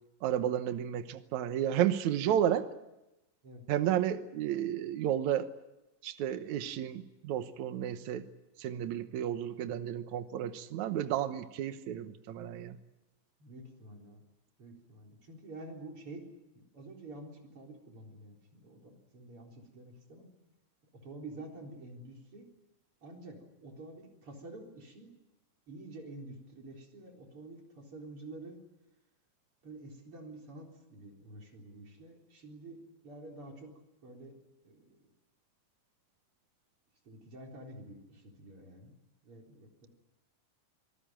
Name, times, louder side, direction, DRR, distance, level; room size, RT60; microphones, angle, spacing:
voice 1, 0.2-2.7 3.7-5.5 6.0-8.3 8.6-12.8, right 10 dB, 70° right, 10 dB, 2.3 m, -32 dB
voice 2, 13.4-14.2 14.6-20.3 21.0-22.5 23.0-25.1 25.7-28.6 29.6-34.3 34.6-35.0 37.1-39.0 39.2-39.9, right 2 dB, 45° right, 1 dB, 4.8 m, -49 dB
27.0 x 18.5 x 9.0 m, 0.95 s
omnidirectional pair, 3.6 m